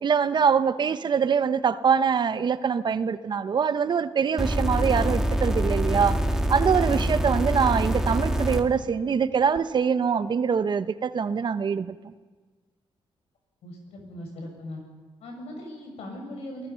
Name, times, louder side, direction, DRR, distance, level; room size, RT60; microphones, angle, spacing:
voice 1, 0.0-6.2 6.5-12.0, right 6 dB, 45° right, 0.9 m, -24 dB
sound 1, 4.4-8.6 9.6-9.7, right 1 dB, 5° right, 2.0 m, -25 dB
voice 2, 13.6-14.8 15.2-16.7, left 1 dB, 80° left, 6.2 m, -39 dB
29.0 x 19.5 x 5.8 m
cardioid pair, 100°, 10 cm